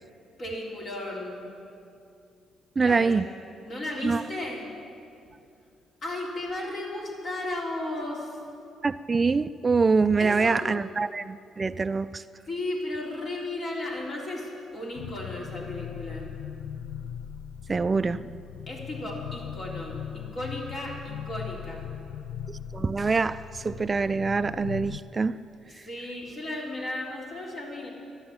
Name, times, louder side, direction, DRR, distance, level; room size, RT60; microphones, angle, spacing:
voice 1, 0.4-1.4 2.8-3.1 3.6-4.7 6.0-8.4 10.2-10.7 12.5-16.3 18.7-21.9 25.7-27.9, left 1 dB, 50° left, -2 dB, 3.7 m, -35 dB
voice 2, 2.8-3.2 4.0-4.2 8.8-12.2 17.7-18.3 22.5-25.4, right 4 dB, 30° right, 14 dB, 0.4 m, -25 dB
sound 1, 15.0-25.0, left 9 dB, 85° left, 0.4 m, -39 dB
12.0 x 11.5 x 8.8 m, 2.5 s
cardioid pair, 90°, 0 cm